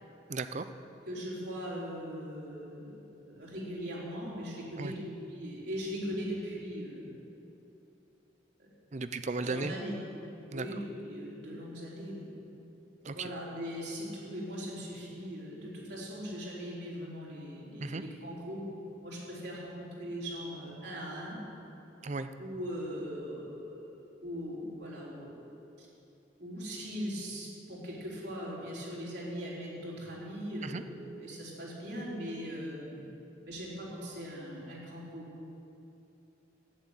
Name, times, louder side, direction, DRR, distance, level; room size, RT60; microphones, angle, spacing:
voice 1, 0.3-0.7 4.8-4.9 8.9-9.7 10.5-10.7 13.0-13.3 17.8-18.0 22.0-22.3 30.6-30.8, right 3 dB, 40° right, 11 dB, 0.6 m, -35 dB
voice 2, 1.1-7.2 8.6-8.7 9.4-10.0 10.5-12.3 13.1-18.6 19.0-21.4 22.4-25.5 25.8-25.9 26.4-33.0 33.4-35.2, equal, 65° right, -5 dB, 4.1 m, -40 dB
12.0 x 10.0 x 8.3 m, 2.8 s
head